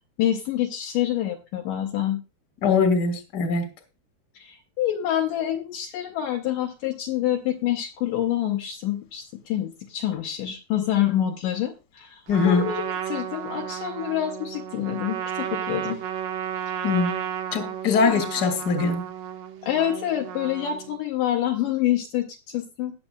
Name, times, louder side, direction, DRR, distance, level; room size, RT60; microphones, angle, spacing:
voice 1, 0.2-2.2 4.3-16.0 16.8-16.9 17.9-18.2 19.6-22.9, left 11 dB, 90° left, 1.8 m, -27 dB
voice 2, 2.6-3.7 12.3-12.7 16.8-17.2 17.5-19.1, left 5 dB, 40° left, 1.5 m, -22 dB
Trumpet, 12.3-21.0, right 9 dB, 70° right, 2.3 m, -33 dB
19.5 x 7.3 x 2.3 m
omnidirectional pair, 5.1 m